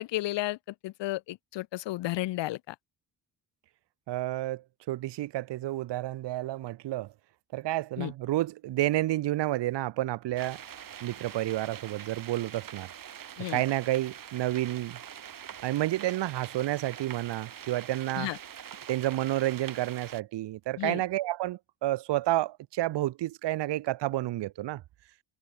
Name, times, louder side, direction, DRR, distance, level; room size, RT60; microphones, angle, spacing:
voice 1, 0.0-2.8 8.0-8.1 13.4-13.6 18.2-18.4 20.8-21.0, left 17 dB, 80° left, 0.7 m, -33 dB
voice 2, 4.1-7.1 7.5-10.6 11.0-12.9 13.5-15.0 15.6-18.3 18.9-24.8, right 15 dB, 75° right, 0.8 m, -30 dB
sound 1, 10.4-20.2, right 9 dB, 50° right, 3.2 m, -44 dB
wide cardioid pair, 170°, 43 cm